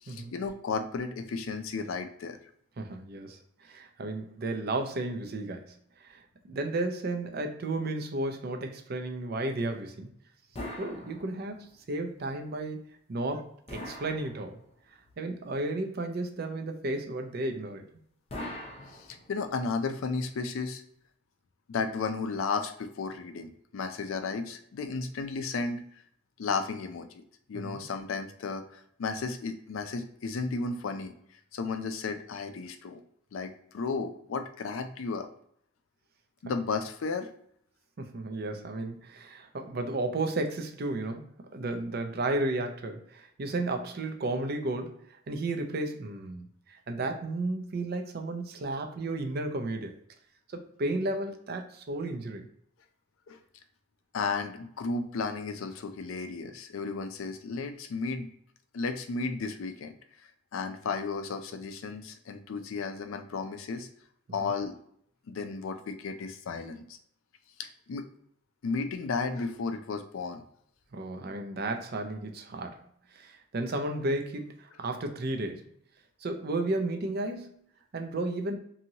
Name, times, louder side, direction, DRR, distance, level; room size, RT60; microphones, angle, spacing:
voice 1, 0.0-2.4 19.0-20.8 21.7-25.8 26.4-27.1 27.5-31.1 31.5-33.0 33.3-35.3 36.4-37.3 53.3-53.4 54.1-58.3 58.7-59.9 60.5-63.9 64.3-64.8 65.3-66.8 67.6-68.1 68.6-70.4, left 4 dB, 75° left, 7 dB, 0.4 m, -33 dB
voice 2, 2.8-10.1 10.8-12.8 13.1-14.6 15.2-17.8 27.5-27.8 38.0-50.0 50.5-52.5 64.4-64.5 70.9-72.8 73.1-75.7 76.2-77.6 77.9-78.6, right 2 dB, 50° right, 5 dB, 0.4 m, -33 dB
sound 1, 10.5-11.7 13.7-14.9 18.3-19.6, left 1 dB, 30° left, 0.5 m, -42 dB
2.8 x 2.7 x 2.7 m, 0.67 s
head